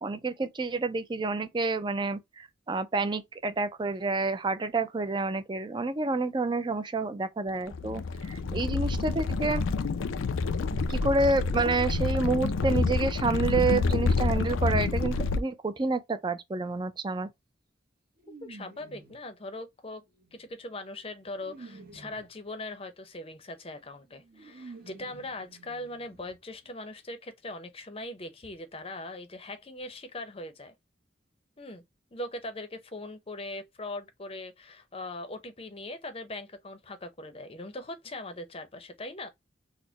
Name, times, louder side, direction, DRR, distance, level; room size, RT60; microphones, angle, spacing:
voice 1, 0.0-9.6 10.7-17.3, right 3 dB, 25° right, 0.4 m, -29 dB
sound 1, 7.7-15.4, left 3 dB, 90° left, 0.4 m, -28 dB
sound 2, 16.6-16.8 18.2-19.3 20.1-22.4 23.7-23.8 24.1-26.4 26.6-26.7 27.0-27.1, right 3 dB, 50° right, 0.9 m, -50 dB
voice 2, 18.4-20.0 20.3-30.7 31.6-31.8 32.1-39.3, left 2 dB, 30° left, 0.6 m, -40 dB
4.1 x 2.1 x 2.7 m
head